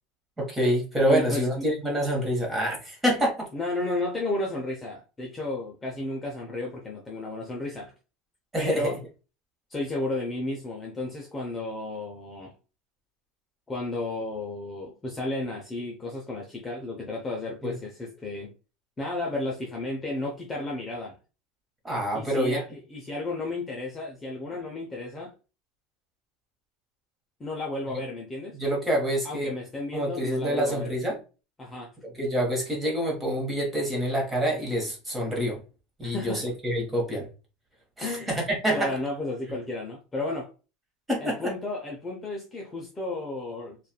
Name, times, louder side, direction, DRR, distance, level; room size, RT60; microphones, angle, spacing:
voice 1, 0.4-3.5 8.5-8.9 17.6-17.7 21.8-22.6 28.5-29.5 29.9-31.2 32.1-35.6 36.0-37.3 38.0-38.9 41.1-41.5, equal, 10° right, 1.1 m, -26 dB
voice 2, 1.1-1.7 3.5-7.9 8.6-9.0 9.7-12.5 13.7-18.5 19.0-21.2 22.1-25.3 27.4-28.6 29.2-30.9 31.6-31.9 36.0-36.4 38.0-38.3 38.7-40.5 41.2-43.8, left 2 dB, 15° left, 0.5 m, -33 dB
3.0 x 2.3 x 2.2 m
supercardioid pair, 145°, 0 cm